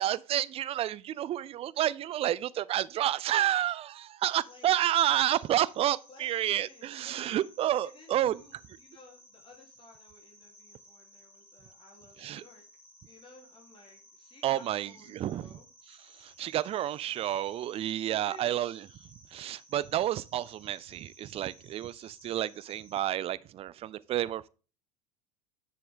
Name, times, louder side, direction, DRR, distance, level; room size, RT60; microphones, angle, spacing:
voice 1, 0.0-8.4 12.2-12.4 14.4-15.5 15.9-18.8 19.3-24.5, right 12 dB, 30° right, 0.5 m, -30 dB
sound 1, 4.2-23.0, equal, 10° left, 4.4 m, -58 dB
voice 2, 4.5-4.8 6.1-7.4 7.8-12.6 13.0-15.7 18.0-18.6, left 3 dB, 25° left, 3.6 m, -56 dB
9.9 x 6.9 x 3.7 m
figure-of-eight pair, 80°, 19 cm